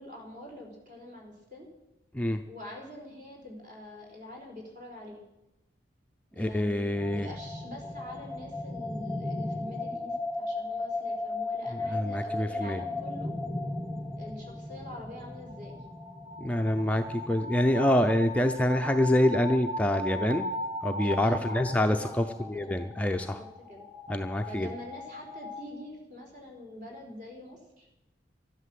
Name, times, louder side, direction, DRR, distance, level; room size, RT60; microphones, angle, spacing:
voice 1, 0.0-1.7 2.5-5.2 6.3-13.3 14.2-15.8 21.0-22.2 22.7-22.8 23.2-23.8 24.5-27.9, left 1 dB, 45° right, 0 dB, 4.1 m, -45 dB
voice 2, 6.4-7.3 11.7-12.8 16.4-20.5 20.8-23.4 24.1-24.7, left 1 dB, 5° left, 5 dB, 0.5 m, -26 dB
sound 1, 7.0-25.6, left 2 dB, 10° right, 1.6 m, -37 dB
12.0 x 11.5 x 7.7 m, 0.93 s
head